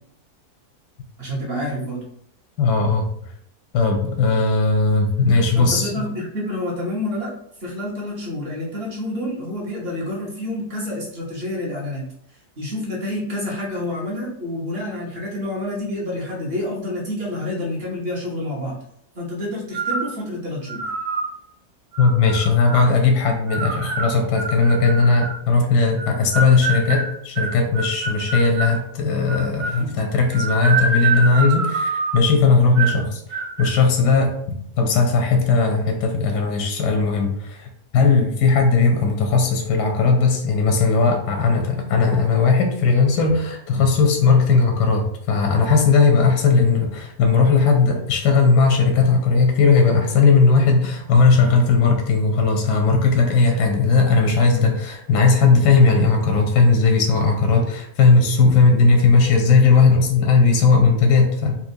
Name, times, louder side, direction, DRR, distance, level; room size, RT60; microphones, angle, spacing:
voice 1, 1.2-2.0 5.5-7.3 7.6-12.1 12.6-18.8 19.1-20.8, left 1 dB, 40° right, -4 dB, 1.1 m, -28 dB
voice 2, 2.6-3.0 3.7-6.1 22.0-61.6, left 4 dB, 90° left, 3 dB, 1.2 m, -17 dB
sound 1, 19.7-20.1 20.7-21.3 21.9-22.9 23.5-25.4 26.0-28.8 29.3-29.9 30.3-32.3 32.8-33.0 33.3-33.7, right 3 dB, 75° right, 1.1 m, -26 dB
4.3 x 2.3 x 2.7 m, 0.69 s
omnidirectional pair, 1.7 m